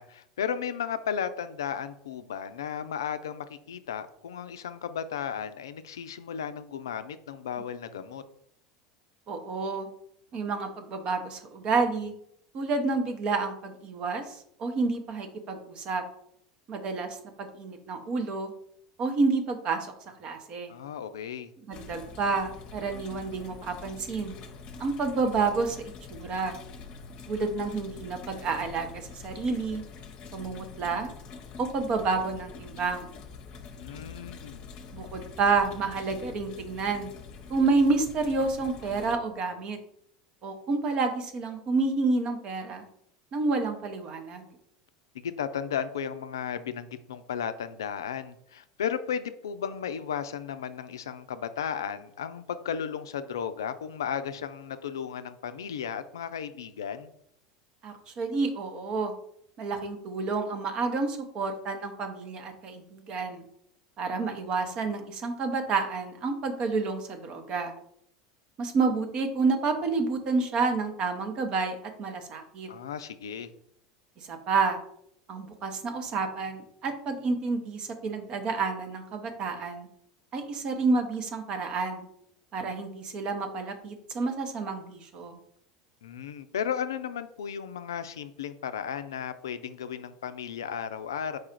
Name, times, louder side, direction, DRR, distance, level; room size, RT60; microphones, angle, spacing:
voice 1, 0.0-8.2 20.7-21.5 33.8-34.7 45.1-57.1 72.7-73.5 86.0-91.4, left 8 dB, 80° left, 11 dB, 0.3 m, -34 dB
voice 2, 9.3-9.9 10.3-12.1 12.5-16.0 16.7-18.5 19.0-19.8 20.2-20.7 21.7-24.4 24.8-25.8 26.1-26.6 27.3-29.8 30.3-31.1 31.6-33.1 34.9-37.1 37.5-39.8 40.4-42.9 43.3-44.5 57.8-59.1 59.6-63.4 64.0-67.7 68.6-72.7 74.3-74.8 75.3-79.9 80.3-82.1 82.5-85.4, right 4 dB, 45° right, 6 dB, 0.8 m, -29 dB
sound 1, 21.7-39.2, left 5 dB, 45° left, 0.7 m, -45 dB
4.7 x 2.4 x 4.4 m, 0.70 s
hypercardioid pair, 80°, 2 cm